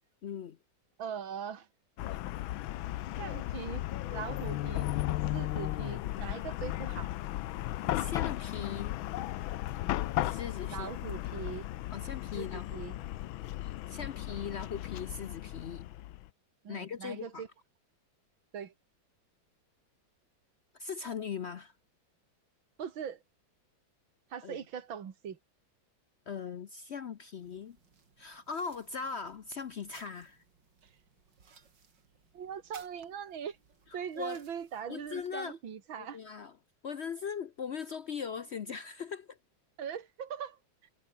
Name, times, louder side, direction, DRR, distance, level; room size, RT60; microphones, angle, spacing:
voice 1, 0.2-0.6 7.9-8.9 10.2-10.9 11.9-12.8 13.6-15.9 16.7-17.4 20.7-21.7 24.4-24.6 26.3-27.8 28.2-30.4 34.2-34.4 34.9-35.6 36.0-36.5 36.8-39.4, left 6 dB, 70° left, 0.6 m, -40 dB
voice 2, 1.0-1.7 2.1-2.2 3.2-3.8 4.1-4.9 5.3-7.1 10.7-11.7 12.3-13.0 16.6-17.5 18.5-18.7 22.8-23.2 24.3-25.4 32.3-33.6 33.9-36.2 39.8-40.6, right 8 dB, 80° right, 2.6 m, -41 dB
Chatter / Car passing by / Traffic noise roadway noise, 2.0-16.3, left 15 dB, 85° left, 1.5 m, -35 dB
sound 1, 27.4-35.3, right 5 dB, 65° right, 3.3 m, -61 dB
omnidirectional pair, 2.1 m